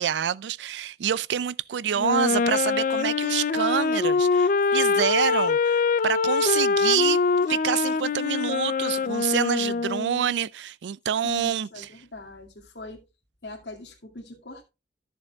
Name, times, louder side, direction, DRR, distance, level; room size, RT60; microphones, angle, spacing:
voice 1, 0.0-7.2 7.5-11.7, right 9 dB, 75° right, 0.4 m, -27 dB
Wind instrument woodwind instrument, 2.0-10.3, left 4 dB, 45° left, 0.4 m, -24 dB
voice 2, 11.2-13.0 13.4-14.6, left 2 dB, 75° left, 2.3 m, -41 dB
14.0 x 7.1 x 2.3 m
head